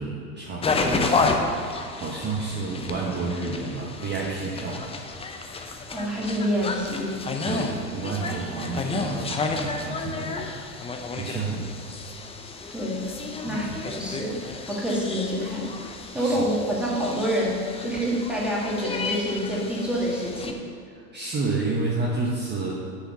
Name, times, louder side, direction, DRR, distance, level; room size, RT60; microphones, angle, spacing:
voice 1, 0.0-4.8 7.4-10.5 11.2-11.7 13.5-13.7 16.1-16.4 20.9-22.8, right 3 dB, 20° right, -3 dB, 1.1 m, -30 dB
sound 1, 0.6-20.5, left 3 dB, 15° left, 0.6 m, -31 dB
voice 2, 5.9-7.2 12.7-13.1 13.4-14.4 14.7-15.7 16.1-20.6, equal, ahead, -5 dB, 2.1 m, -27 dB
6.7 x 5.1 x 7.0 m, 2.3 s
hypercardioid pair, 95°, 46 cm